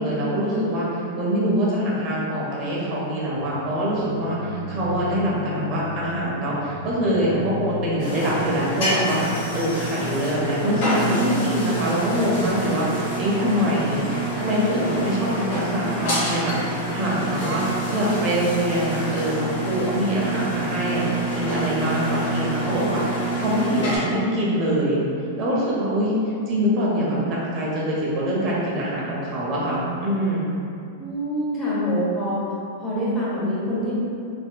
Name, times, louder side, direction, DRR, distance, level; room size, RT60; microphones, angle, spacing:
voice 1, 0.0-14.0 14.4-25.0 25.4-26.1 26.5-30.4, equal, 40° right, -6 dB, 1.0 m, -24 dB
sound 1, 3.4-12.5, left 1 dB, 85° left, 1.0 m, -35 dB
sound 2, 8.0-24.0, right 1 dB, 65° left, 1.3 m, -28 dB
voice 2, 31.0-32.4 32.8-33.9, equal, 15° left, -9 dB, 1.2 m, -25 dB
4.3 x 2.2 x 2.2 m, 2.6 s
hypercardioid pair, 110°, 0 cm